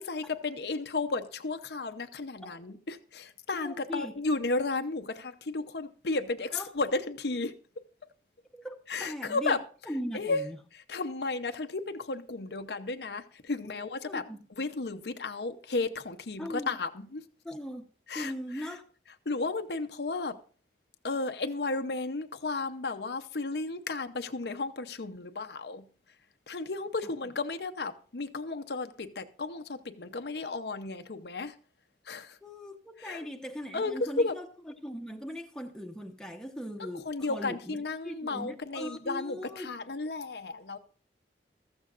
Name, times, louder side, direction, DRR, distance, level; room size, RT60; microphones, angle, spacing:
voice 1, 0.0-7.5 8.9-10.4 10.7-17.2 18.1-18.8 19.3-20.4 21.0-25.9 26.5-31.6 32.0-32.4 33.0-33.3 33.7-34.4 36.8-40.8, left 3 dB, 70° left, 0.8 m, -34 dB
voice 2, 3.6-4.1 6.5-6.7 8.5-9.6 9.9-10.6 13.7-14.4 16.4-16.7 17.4-17.9 18.1-18.8 32.4-34.4 34.8-39.7, equal, 5° left, 1.0 m, -39 dB
15.0 x 14.0 x 2.5 m
head